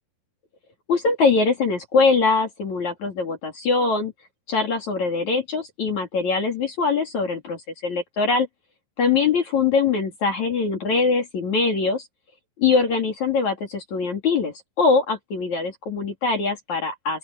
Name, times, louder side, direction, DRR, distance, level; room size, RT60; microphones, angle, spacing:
voice 1, 0.9-4.1 4.5-8.5 9.0-12.1 12.6-17.2, left 4 dB, 45° left, 3.6 m, -22 dB
open air
omnidirectional pair, 5.6 m